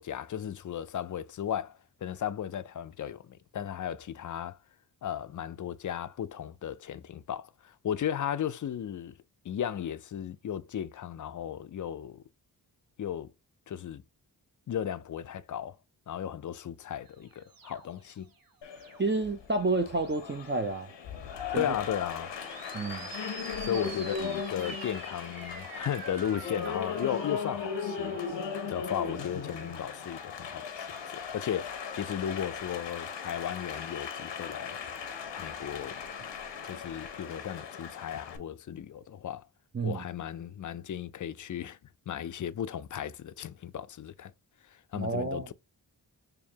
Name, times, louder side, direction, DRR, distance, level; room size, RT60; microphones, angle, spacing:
voice 1, 0.0-4.6 5.0-9.2 9.4-12.2 13.0-13.3 13.7-14.0 14.7-15.8 16.1-18.3 21.5-22.3 23.6-28.2 28.7-30.9 31.1-34.8 35.4-36.0 36.6-39.5 39.8-41.8 42.1-44.3 44.7-45.5, left 9 dB, 45° left, 0.5 m, -35 dB
sound 1, 17.0-19.3 19.8-20.4 22.1-30.3, right 5 dB, 55° right, 0.9 m, -47 dB
Applause, 18.6-38.4, left 6 dB, 85° left, 0.8 m, -38 dB
voice 2, 19.0-20.9 21.5-21.6 22.7-23.1 39.7-40.0 44.9-45.5, right 3 dB, 25° right, 0.6 m, -30 dB
4.5 x 2.6 x 2.8 m
cardioid pair, 45°, 43 cm